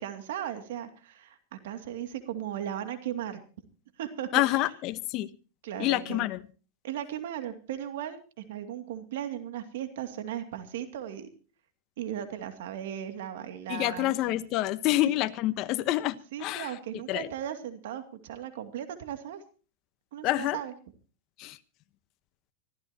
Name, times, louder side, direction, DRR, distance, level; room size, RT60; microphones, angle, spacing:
voice 1, 0.0-3.4 4.0-4.3 5.6-6.3 6.8-11.3 12.0-14.1 16.3-19.4 20.1-20.7, right 10 dB, 75° right, 2.5 m, -37 dB
voice 2, 4.3-5.3 5.8-6.4 13.7-16.7 17.1-17.3 20.2-20.6 21.4-21.6, left 16 dB, 45° left, 1.1 m, -27 dB
25.5 x 14.5 x 2.9 m
supercardioid pair, 135°, 0 cm